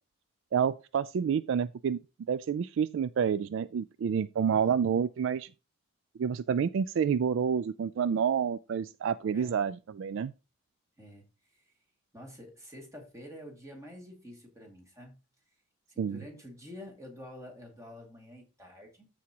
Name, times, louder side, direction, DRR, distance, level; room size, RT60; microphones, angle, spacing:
voice 1, 0.5-2.0 2.3-5.5 6.2-10.3 16.0-16.2, right 7 dB, 60° right, 0.3 m, -29 dB
voice 2, 9.3-9.6 11.0-11.7 12.1-15.2 15.9-19.1, left 1 dB, 15° right, 2.2 m, -48 dB
14.0 x 4.9 x 2.9 m
head